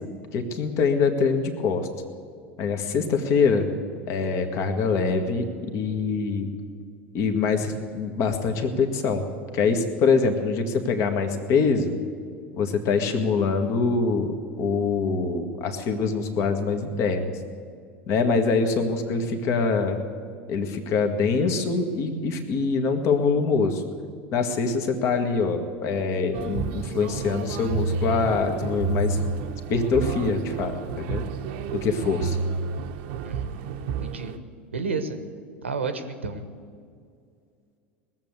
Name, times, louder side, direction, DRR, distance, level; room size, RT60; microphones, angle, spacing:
voice 1, 0.3-1.9 2.6-3.7 4.1-5.4 5.7-6.5 7.1-9.2 9.5-12.0 12.5-14.3 14.6-17.3 18.1-20.0 20.5-23.8 24.3-29.2 29.7-31.2 31.8-32.4, left 4 dB, 50° left, 6 dB, 1.6 m, -24 dB
sound 1, 26.3-34.4, right 5 dB, 65° right, 0.8 m, -30 dB
voice 2, 33.2-34.4 34.7-35.2 35.6-36.4, right 4 dB, 90° right, 9 dB, 1.1 m, -31 dB
19.5 x 7.5 x 8.0 m, 2.2 s
hypercardioid pair, 80°, 6 cm